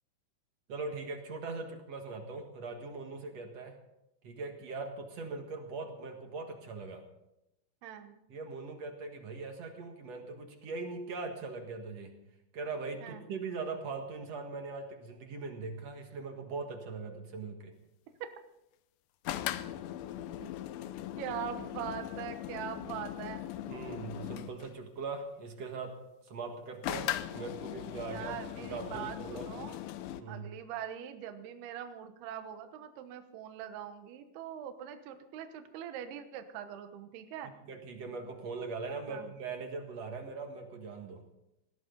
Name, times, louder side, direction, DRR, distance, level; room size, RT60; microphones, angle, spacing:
voice 1, 0.7-3.8 4.2-7.0 8.3-12.1 12.5-17.7 23.7-26.0 26.3-29.5 30.1-30.5 37.7-41.2, right 4 dB, 55° right, 4 dB, 2.0 m, -41 dB
voice 2, 7.8-8.2 13.0-13.2 21.2-23.4 28.0-29.8 30.3-37.5 39.1-39.3, right 9 dB, 70° right, 8 dB, 3.0 m, -42 dB
sound 1, 19.2-24.7 26.8-30.2, left 13 dB, 85° left, 2.1 m, -39 dB
20.5 x 16.0 x 3.9 m, 0.86 s
omnidirectional pair, 5.2 m